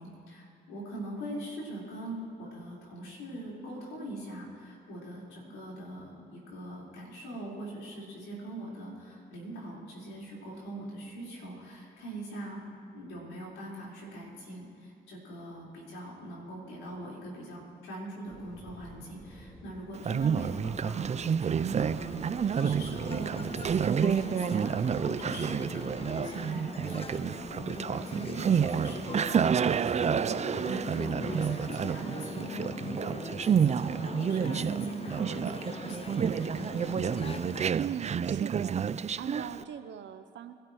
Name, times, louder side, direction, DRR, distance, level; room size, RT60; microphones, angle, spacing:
voice 1, 0.0-12.6 12.9-36.8, right 1 dB, 85° left, -4 dB, 4.6 m, -42 dB
sound 1, 18.3-27.8, equal, 5° left, 4.2 m, -52 dB
Conversation, 19.9-39.6, right 7 dB, 35° right, 0.4 m, -29 dB
sound 2, 21.8-37.7, left 5 dB, 30° left, 0.6 m, -42 dB
voice 2, 37.8-38.8 39.2-40.5, right 9 dB, 70° right, 8 dB, 0.8 m, -40 dB
26.0 x 12.5 x 3.1 m, 2.4 s
supercardioid pair, 55°, 19 cm